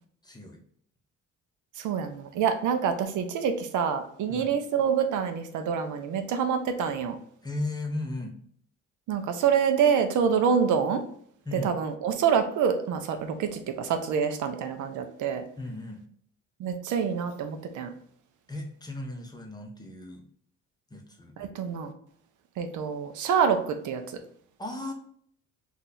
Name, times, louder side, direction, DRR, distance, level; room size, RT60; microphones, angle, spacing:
voice 1, 0.2-0.6 4.3-4.5 7.4-8.4 11.5-11.7 15.6-16.0 18.5-20.2 20.9-21.4 24.6-24.9, left 2 dB, 15° left, 2 dB, 0.7 m, -36 dB
voice 2, 1.8-7.2 9.1-11.0 11.5-15.4 16.6-17.9 21.4-21.9 22.6-24.0, right 7 dB, 75° right, 7 dB, 0.6 m, -26 dB
2.7 x 2.4 x 3.9 m, 0.62 s
cardioid pair, 90°, 30 cm